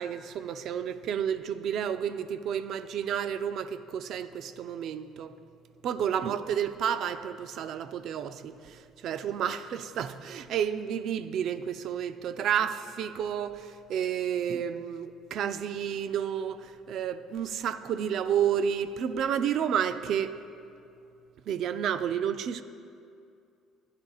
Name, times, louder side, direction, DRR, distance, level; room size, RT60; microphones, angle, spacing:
voice 1, 0.0-5.3 5.8-20.3 21.5-22.6, right 8 dB, 60° right, 0.4 m, -31 dB
15.0 x 10.0 x 2.4 m
cardioid pair, 110°, 0 cm